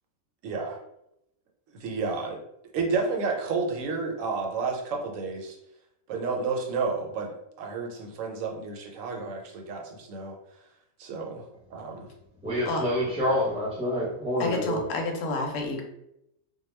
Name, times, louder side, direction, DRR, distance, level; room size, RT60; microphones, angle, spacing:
voice 1, 0.4-0.8 1.7-2.4 2.7-5.6 6.1-10.4 11.0-11.4 11.7-12.1, right 4 dB, 70° right, 0.9 m, -31 dB
voice 2, 12.4-15.0, equal, 5° right, 0.6 m, -27 dB
voice 3, 14.4-15.8, left 2 dB, 70° left, 0.9 m, -29 dB
2.2 x 2.2 x 3.1 m
omnidirectional pair, 1.5 m